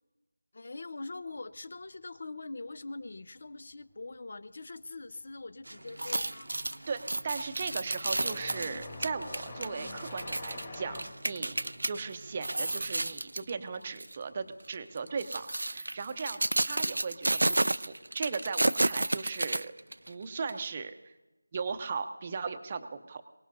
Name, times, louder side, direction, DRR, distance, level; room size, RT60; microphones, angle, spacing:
voice 1, 0.5-6.5, left 3 dB, 45° left, 18 dB, 0.6 m, -43 dB
sound 1, 5.5-5.8 6.1-14.4 14.7-15.8 16.8-16.9 17.7-17.8 19.5-19.6, left 3 dB, 30° left, 1.9 m, -46 dB
sound 2, 5.6-13.1, right 1 dB, 90° right, 1.2 m, -47 dB
sound 3, 5.9-11.9 12.3-13.5 14.0-14.2 15.0-20.1 20.5-20.6, right 2 dB, 70° right, 0.5 m, -31 dB
voice 2, 6.9-19.7 20.1-21.1 21.5-23.2, right 5 dB, 20° right, 9 dB, 0.7 m, -37 dB
28.5 x 18.5 x 2.7 m, 1.1 s
figure-of-eight pair, 170°, 0 cm